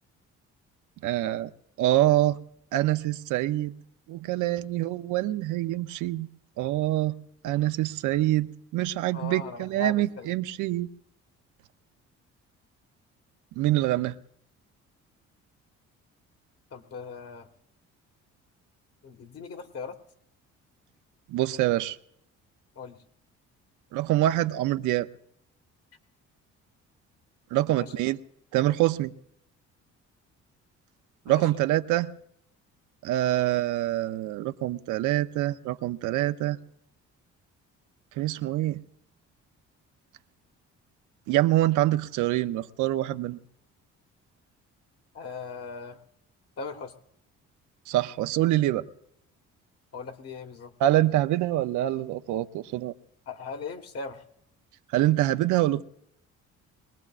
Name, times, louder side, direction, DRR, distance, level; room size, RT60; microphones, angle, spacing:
voice 1, 1.0-1.5 1.8-2.4 2.7-3.7 4.1-6.3 6.6-7.1 7.4-10.9 13.6-14.2 21.3-22.0 23.9-25.1 27.5-28.2 28.5-29.1 31.3-32.1 33.0-36.6 38.2-38.8 41.3-43.4 47.9-48.8 50.8-52.9 54.9-55.8, right 15 dB, 85° right, 0.7 m, -25 dB
voice 2, 9.1-10.3 16.7-17.5 19.0-20.0 22.7-23.0 27.7-27.9 31.3-31.6 45.1-46.0 46.6-46.9 49.9-50.7 53.3-54.2, left 5 dB, 50° left, 1.6 m, -39 dB
23.0 x 19.0 x 2.5 m
cardioid pair, 90°, 30 cm